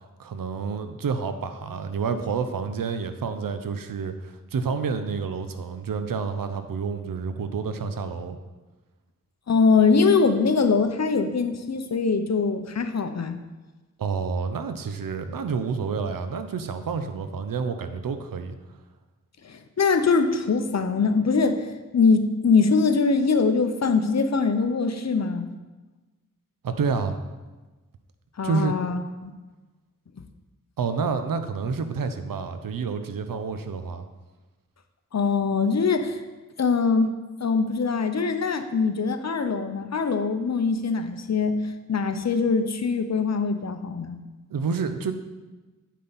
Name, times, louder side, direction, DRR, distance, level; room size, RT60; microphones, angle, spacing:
voice 1, 0.2-8.4 14.0-18.5 26.6-27.2 28.4-28.8 30.8-34.0 44.5-45.1, right 5 dB, 85° right, 9 dB, 0.7 m, -29 dB
voice 2, 9.5-13.4 19.4-21.7 21.9-25.5 28.4-29.3 35.1-36.2 36.6-37.1 37.4-41.6 41.9-44.2, left 4 dB, 55° left, 8 dB, 0.8 m, -22 dB
8.4 x 5.6 x 4.1 m, 1.2 s
cardioid pair, 50°, 33 cm